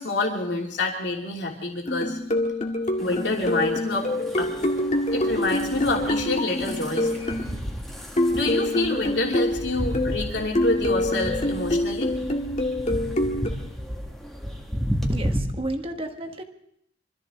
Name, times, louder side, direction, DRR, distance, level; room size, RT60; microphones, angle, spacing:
voice 1, 0.0-2.2 3.0-4.1 4.4-4.6 5.1-7.4 8.3-12.1, left 2 dB, 65° left, 0 dB, 3.0 m, -27 dB
sound 1, 1.9-7.4 8.2-10.3 10.5-13.5, left 1 dB, 40° left, 1.9 m, -26 dB
sound 2, 3.0-15.4, equal, ahead, 1.9 m, -33 dB
voice 2, 15.1-16.4, right 1 dB, 30° right, 5 dB, 1.4 m, -32 dB
25.0 x 14.0 x 3.8 m, 0.73 s
head